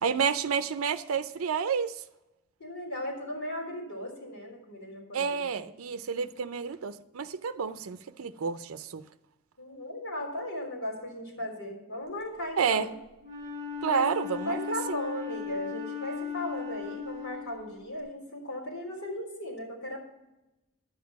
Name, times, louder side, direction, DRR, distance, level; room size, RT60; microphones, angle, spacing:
voice 1, 0.0-2.0 5.1-9.0 12.6-12.9 13.8-14.6 14.9-15.0, right 6 dB, 85° right, 0.5 m, -30 dB
voice 2, 2.6-5.6 9.6-12.9 13.9-14.1 14.4-20.0, left 1 dB, 85° left, 3.7 m, -37 dB
Wind instrument woodwind instrument, 13.2-18.0, left 7 dB, 20° right, 3.8 m, -37 dB
11.0 x 7.4 x 5.8 m
head